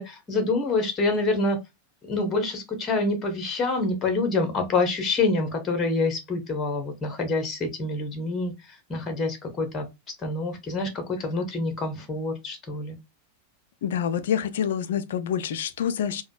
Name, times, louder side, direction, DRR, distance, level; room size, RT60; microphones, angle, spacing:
voice 1, 0.0-1.6 2.1-8.5 8.9-9.9 10.2-13.0, left 3 dB, 20° left, 0.9 m, -26 dB
voice 2, 13.8-16.2, left 8 dB, 60° left, 0.4 m, -27 dB
4.9 x 2.2 x 2.2 m
figure-of-eight pair, 90°, 0 cm